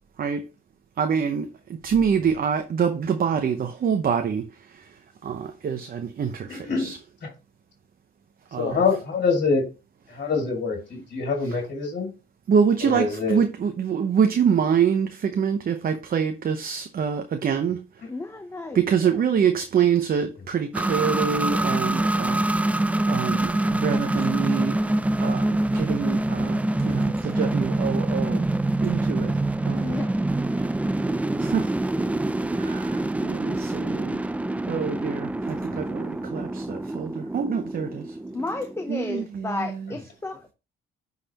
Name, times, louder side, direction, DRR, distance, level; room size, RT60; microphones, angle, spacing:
voice 1, 1.0-7.0 8.5-8.8 11.4-11.6 12.5-18.1 18.7-28.5 28.8-30.0 31.4-31.7 32.5-34.2 34.7-38.2 38.9-39.9, right 7 dB, 45° right, 0.8 m, -26 dB
voice 2, 6.5-6.9 7.2-7.3 8.6-9.6 10.1-12.1 12.8-13.4, left 4 dB, 50° left, 2.2 m, -25 dB
voice 3, 18.1-18.8 29.8-30.1 38.3-40.5, left 2 dB, 15° left, 0.7 m, -32 dB
sound 1, 20.7-39.2, right 1 dB, 5° right, 0.3 m, -25 dB
9.7 x 4.1 x 2.9 m
cardioid pair, 90°, 20 cm